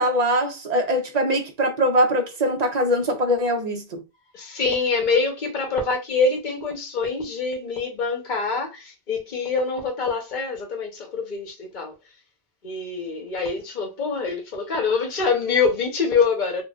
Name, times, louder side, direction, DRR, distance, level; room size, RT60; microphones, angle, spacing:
voice 1, 0.0-4.0, equal, 45° right, 0.7 m, -22 dB
voice 2, 4.3-11.9 12.6-16.6, left 4 dB, 50° left, 1.0 m, -25 dB
4.0 x 2.3 x 2.3 m
omnidirectional pair, 1.1 m